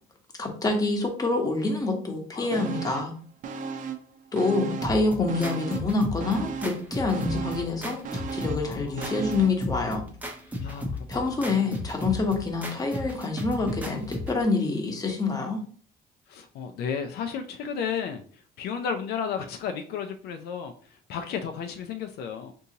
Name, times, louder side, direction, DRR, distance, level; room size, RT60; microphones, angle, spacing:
voice 1, 0.4-3.1 4.3-10.0 11.1-15.6, left 3 dB, 20° left, 2 dB, 1.0 m, -27 dB
voice 2, 2.3-2.7 8.6-9.0 10.6-10.9 11.2-11.6 16.3-22.5, left 7 dB, 75° left, 6 dB, 0.5 m, -33 dB
sound 1, 2.5-3.2 3.4-5.0 5.3-9.6 10.0-10.1, right 5 dB, 50° right, 0.4 m, -36 dB
sound 2, 4.8-14.4, left 1 dB, 10° right, 0.6 m, -35 dB
3.8 x 2.7 x 2.8 m, 0.43 s
cardioid pair, 110°, 17 cm